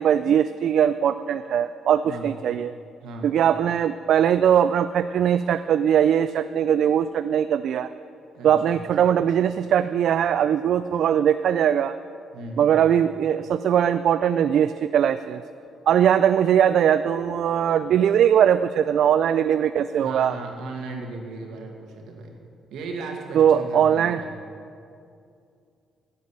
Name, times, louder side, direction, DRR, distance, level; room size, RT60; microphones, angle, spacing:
voice 1, 0.0-2.7 3.2-7.9 8.4-12.0 12.6-15.4 15.9-20.4 23.3-24.2, right 9 dB, 70° right, 12 dB, 0.3 m, -20 dB
voice 2, 3.0-3.3 8.3-8.8 12.3-12.8 20.0-22.4 22.7-24.3, right 3 dB, 85° right, 1 dB, 2.1 m, -36 dB
10.5 x 8.0 x 10.0 m, 2.4 s
cardioid pair, 90°, 0 cm